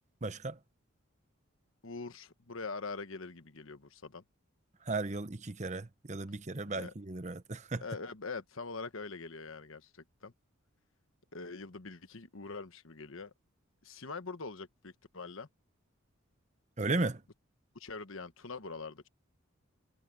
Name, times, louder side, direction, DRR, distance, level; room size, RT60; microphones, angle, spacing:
voice 1, 0.2-0.6 4.8-7.8 16.8-17.2, right 3 dB, 35° right, 0.9 m, -35 dB
voice 2, 1.8-4.2 6.7-6.9 7.8-10.3 11.3-13.3 13.8-15.5 17.7-19.1, left 4 dB, 70° left, 1.2 m, -43 dB
head